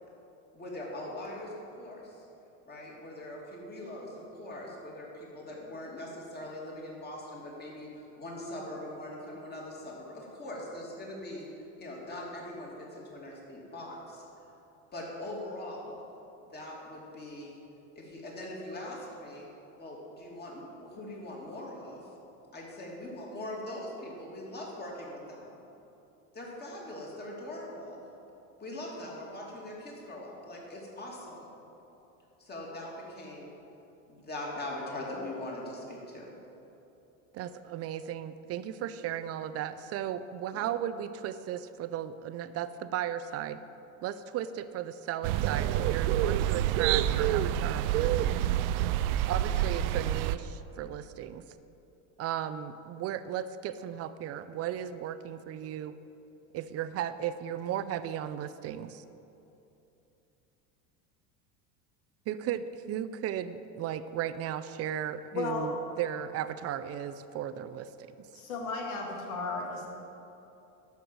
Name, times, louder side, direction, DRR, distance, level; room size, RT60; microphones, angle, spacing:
voice 1, 0.5-2.3 2.6-11.5 11.8-14.2 14.9-16.0 16.4-17.6 17.9-19.5 19.8-22.1 22.5-25.6 26.3-28.0 28.6-31.5 32.4-33.5 34.1-36.3 40.5-40.6, left 1 dB, 25° left, -3 dB, 2.8 m, -41 dB
voice 2, 37.3-43.6 44.0-48.5 49.3-51.4 52.2-55.9 56.5-59.0 62.3-68.1, right 10 dB, 35° right, 13 dB, 0.5 m, -36 dB
sound 1, 45.2-50.4, right 12 dB, 80° right, 0.6 m, -27 dB
voice 3, 65.3-65.7 68.3-69.9, left 3 dB, 85° left, 0 dB, 2.5 m, -34 dB
12.5 x 5.9 x 7.7 m, 2.9 s
supercardioid pair, 120°, 42 cm